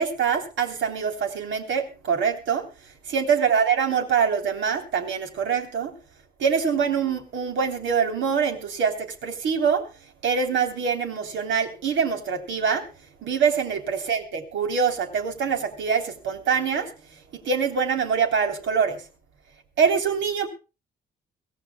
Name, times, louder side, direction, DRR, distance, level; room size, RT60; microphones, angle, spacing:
voice 1, 0.0-2.7 3.1-6.0 6.4-9.8 10.2-12.9 13.2-16.9 17.5-19.0 19.8-20.5, right 6 dB, 75° right, 4 dB, 3.3 m, -24 dB
23.5 x 16.0 x 2.3 m, 0.31 s
cardioid pair, 90°, 20 cm